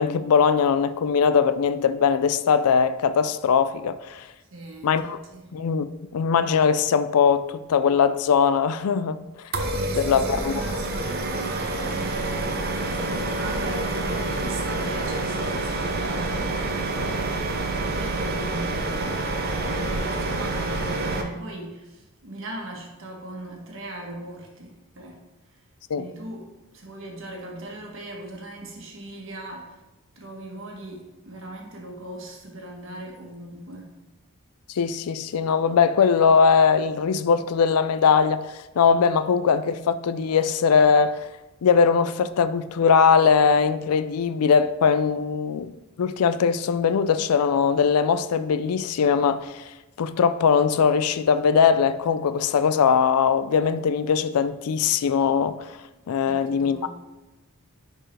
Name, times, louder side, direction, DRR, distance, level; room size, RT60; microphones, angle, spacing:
voice 1, 0.0-4.2 4.8-5.2 5.5-9.3 9.9-10.8 25.9-26.0 34.8-38.5 38.8-41.2 41.6-45.7 46.0-49.6 50.0-55.7 56.1-56.9, left 6 dB, 85° left, 0.4 m, -21 dB
voice 2, 4.5-5.5 9.7-25.2 26.0-29.8 30.1-33.9 56.2-56.9, right 1 dB, 60° right, 1.4 m, -39 dB
sound 1, 9.5-21.2, right 2 dB, 45° right, 0.7 m, -27 dB
10.0 x 4.5 x 3.3 m
head